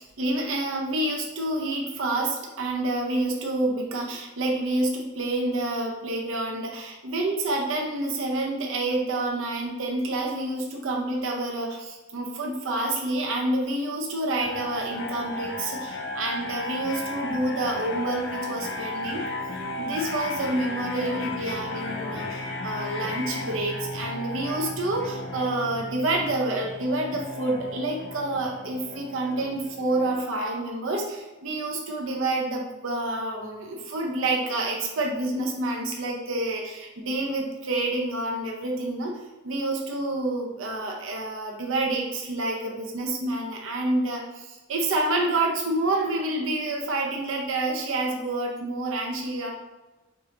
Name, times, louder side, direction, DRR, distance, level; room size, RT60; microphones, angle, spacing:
voice 1, 0.0-19.3 19.8-49.5, right 2 dB, 75° right, 0 dB, 0.6 m, -28 dB
sound 1, 14.4-30.1, left 2 dB, 60° left, 0.7 m, -34 dB
4.5 x 2.8 x 3.1 m, 1.1 s
head